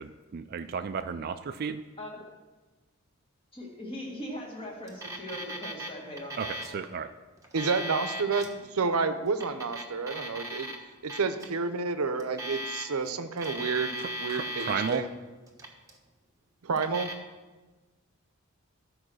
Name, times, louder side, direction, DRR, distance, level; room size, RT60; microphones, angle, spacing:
voice 1, 0.0-1.8 6.4-7.1 14.0-15.0, right 6 dB, 45° right, 9 dB, 0.3 m, -34 dB
voice 2, 3.5-6.8, equal, 25° left, -1 dB, 1.9 m, -40 dB
Alarm, 4.9-5.9 6.2-6.8 7.4-8.5 9.3-10.8 11.1-11.5 12.2-13.1 13.4-15.0 15.5-16.0 16.8-17.1, equal, 15° right, 1.1 m, -37 dB
voice 3, 7.5-10.7 11.0-15.1 16.6-17.1, right 4 dB, 90° right, 10 dB, 0.7 m, -30 dB
13.5 x 4.7 x 6.2 m, 1.2 s
head